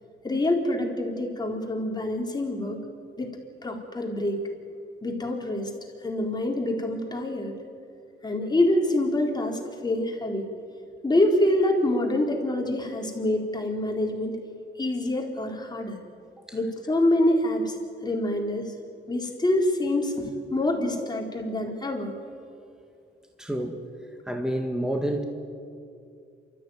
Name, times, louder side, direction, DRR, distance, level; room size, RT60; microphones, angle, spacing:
voice 1, 0.2-2.8 3.2-3.3 3.6-4.5 5.0-5.7 6.0-7.6 8.2-10.5 11.0-14.4 14.8-16.0 16.5-17.8 18.0-18.7 19.1-22.1, left 1 dB, 20° left, 1 dB, 4.1 m, -26 dB
voice 2, 23.4-23.8 24.3-25.2, right 1 dB, 5° right, 4 dB, 2.0 m, -28 dB
29.0 x 14.0 x 9.5 m, 2.5 s
cardioid pair, 90°, 20 cm